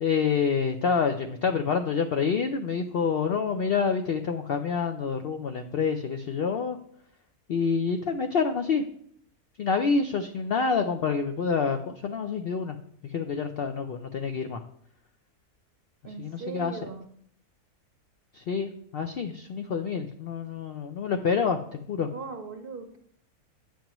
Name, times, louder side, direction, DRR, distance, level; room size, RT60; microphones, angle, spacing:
voice 1, 0.0-6.8 7.5-8.8 9.6-12.8 13.0-14.6 16.0-16.8 18.3-22.1, left 5 dB, 90° left, 6 dB, 0.5 m, -27 dB
voice 2, 16.0-17.0 22.1-23.0, right 4 dB, 50° right, 5 dB, 0.7 m, -39 dB
8.8 x 7.3 x 3.0 m, 0.64 s
omnidirectional pair, 1.6 m